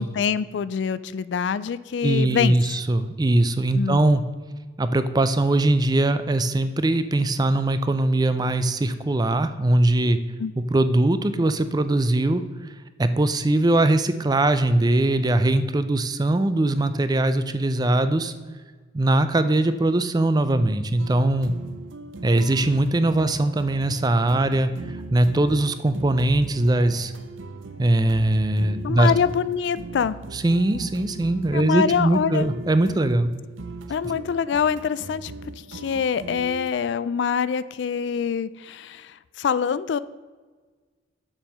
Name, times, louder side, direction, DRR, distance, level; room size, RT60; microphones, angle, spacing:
voice 1, 0.0-2.6 3.7-4.1 10.4-10.5 28.8-30.2 31.5-32.5 33.9-35.3 35.7-39.1 39.4-40.0, left 6 dB, 65° left, 17 dB, 0.3 m, -25 dB
voice 2, 2.0-4.2 4.8-10.2 10.6-12.4 13.0-18.3 18.9-21.5 22.2-27.1 27.8-29.1 30.3-33.3, right 2 dB, 20° right, 11 dB, 0.4 m, -21 dB
sound 1, 21.0-36.7, right 2 dB, 80° right, 0.6 m, -40 dB
7.3 x 5.4 x 6.3 m, 1.4 s
head